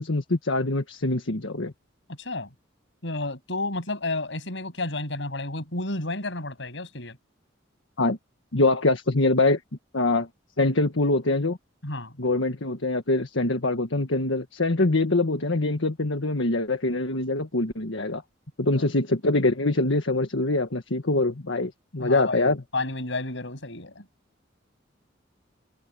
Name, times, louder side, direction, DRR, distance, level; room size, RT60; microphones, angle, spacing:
voice 1, 0.0-1.7 8.0-8.2 8.5-9.6 9.9-10.3 10.6-11.6 12.2-18.2 18.6-22.6, left 2 dB, 90° left, 1.6 m, -24 dB
voice 2, 2.2-2.5 3.0-7.2 11.8-12.1 18.7-18.9 22.0-24.0, left 2 dB, 70° left, 7.6 m, -31 dB
head